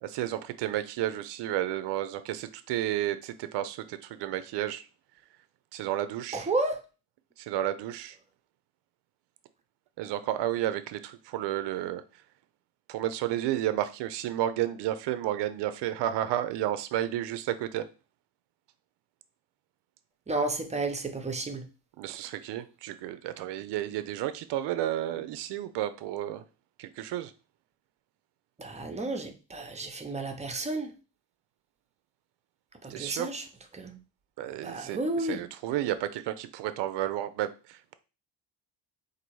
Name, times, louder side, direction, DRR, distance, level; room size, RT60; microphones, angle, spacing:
voice 1, 0.0-4.9 5.7-6.5 7.4-8.2 10.0-12.0 12.9-17.9 22.0-26.4 26.8-27.3 32.9-33.3 34.4-37.8, right 12 dB, 80° right, 0.5 m, -32 dB
voice 2, 6.3-6.8 20.3-21.6 28.6-30.9 32.8-33.5 33.7-33.9 34.6-35.4, right 2 dB, 15° right, 0.6 m, -32 dB
4.0 x 2.6 x 4.6 m
cardioid pair, 125°, 41 cm